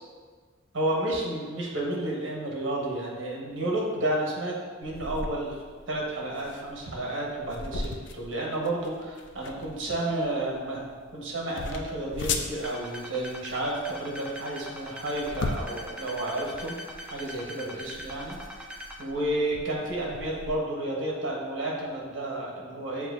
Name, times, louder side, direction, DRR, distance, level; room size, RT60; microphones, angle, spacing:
voice 1, 0.7-4.5 4.8-5.6 5.9-10.9 11.1-16.7 17.0-18.4 19.0-23.1, right 1 dB, 75° right, -3 dB, 1.1 m, -31 dB
sound 1, 4.8-20.6, left 3 dB, 60° left, 0.4 m, -39 dB
sound 2, 12.5-19.0, equal, 5° right, 0.4 m, -41 dB
7.2 x 2.7 x 2.5 m, 1.5 s
head